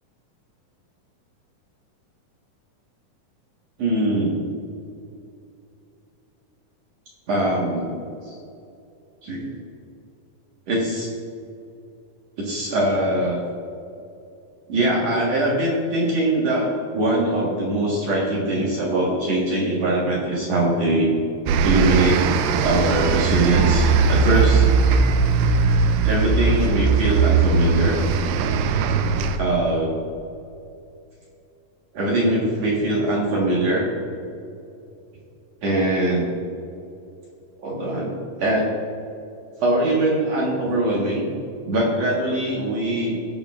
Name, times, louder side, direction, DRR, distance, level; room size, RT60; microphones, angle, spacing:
voice 1, 3.8-4.4 7.3-8.0 8.3-8.4 9.2-9.5 10.7-11.1 12.4-13.4 14.7-21.1 21.6-22.3 22.6-24.7 26.0-28.0 29.3-30.0 31.9-33.9 35.6-36.3 37.6-38.1 38.4-38.7 39.6-41.3 41.7-43.2, right 1 dB, 55° right, -4 dB, 2.3 m, -22 dB
sound 1, 21.5-29.4, right 5 dB, 80° right, 2.1 m, -19 dB
18.0 x 6.8 x 2.4 m, 2.6 s
omnidirectional pair, 4.0 m